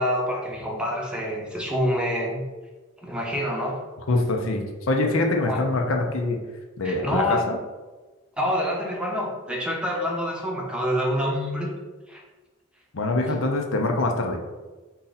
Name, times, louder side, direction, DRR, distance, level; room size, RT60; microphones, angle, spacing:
voice 1, 0.0-2.4 3.0-3.8 5.4-5.6 6.8-7.4 8.4-11.7 12.1-12.2, equal, 5° right, -1 dB, 0.7 m, -26 dB
voice 2, 4.1-6.4 6.8-7.6 12.9-14.4, left 2 dB, 75° left, 3 dB, 0.7 m, -24 dB
4.8 x 2.8 x 4.0 m, 1.2 s
head